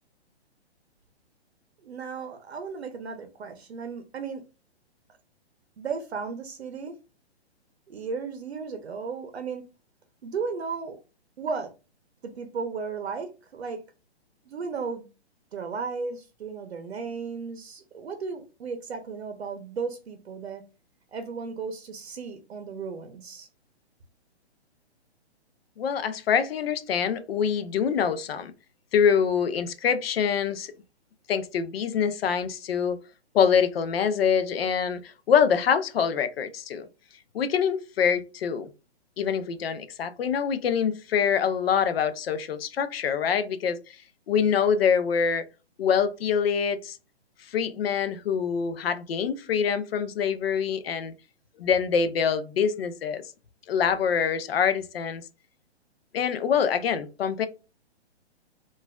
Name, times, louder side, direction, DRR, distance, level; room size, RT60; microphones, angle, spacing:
voice 1, 1.8-4.5 5.8-7.0 7.9-9.6 10.2-11.0 11.4-11.7 12.2-13.8 14.4-15.1 15.5-20.6 21.1-23.5, right 5 dB, 70° right, 0.7 m, -35 dB
voice 2, 25.8-28.5 28.9-30.7 31.3-33.0 33.3-36.8 37.3-38.7 39.2-44.0 44.3-45.4 45.8-47.0 47.5-51.1 51.6-53.2 53.7-55.2 56.1-57.5, left 7 dB, 60° left, 0.6 m, -25 dB
3.9 x 2.5 x 2.3 m
hypercardioid pair, 135°, 33 cm